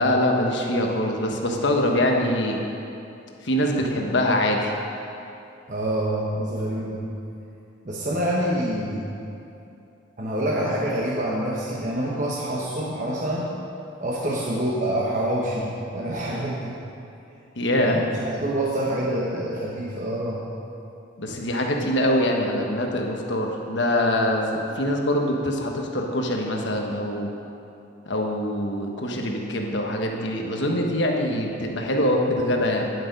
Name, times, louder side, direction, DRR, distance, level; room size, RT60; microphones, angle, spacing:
voice 1, 0.0-2.6 3.4-4.7 17.6-18.0 21.2-27.3 28.1-32.9, left 1 dB, 65° left, 1 dB, 1.2 m, -24 dB
voice 2, 5.7-7.0 7.8-9.1 10.2-13.5 14.0-16.8 17.9-20.4, right 1 dB, 40° right, -5 dB, 1.0 m, -26 dB
10.5 x 7.9 x 5.2 m, 2.7 s
head